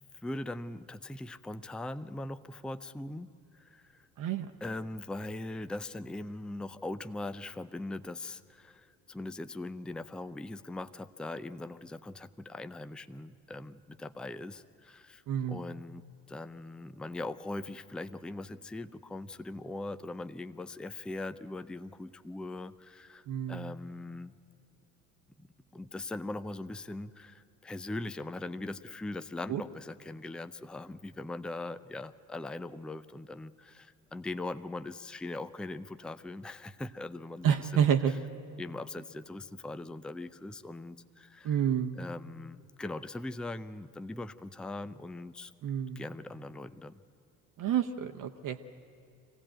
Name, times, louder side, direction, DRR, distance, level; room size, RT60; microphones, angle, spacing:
voice 1, 0.2-4.0 4.6-15.2 15.5-24.3 25.4-25.5 25.7-37.9 38.6-41.6 42.0-45.5 46.0-47.0, left 2 dB, ahead, 12 dB, 0.5 m, -41 dB
voice 2, 15.3-15.7 23.3-23.7 29.5-29.6 37.4-38.2 41.4-42.0 45.6-46.0 47.6-48.6, right 8 dB, 50° right, 5 dB, 1.0 m, -29 dB
23.0 x 16.0 x 9.0 m, 2.4 s
hypercardioid pair, 65°, 42 cm